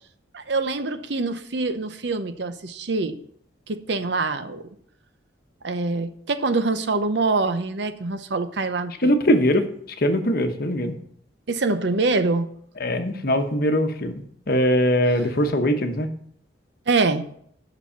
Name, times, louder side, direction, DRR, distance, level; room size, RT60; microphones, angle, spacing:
voice 1, 0.3-3.2 3.7-4.6 5.6-9.1 11.5-12.5 16.9-17.2, right 3 dB, 60° right, 10 dB, 0.7 m, -24 dB
voice 2, 9.0-9.7 10.0-10.9 12.8-16.1, equal, 50° left, 7 dB, 1.0 m, -21 dB
9.8 x 6.3 x 5.7 m, 0.65 s
head